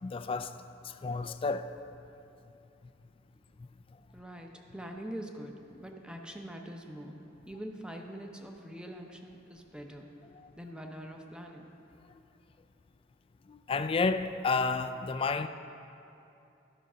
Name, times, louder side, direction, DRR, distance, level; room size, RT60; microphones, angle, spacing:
voice 1, 0.0-1.7 3.6-3.7 13.5-15.5, left 4 dB, 30° left, 0.3 m, -31 dB
voice 2, 4.1-7.2 7.5-10.1 10.6-11.7, equal, 5° right, 0.6 m, -44 dB
12.5 x 5.2 x 6.1 m
head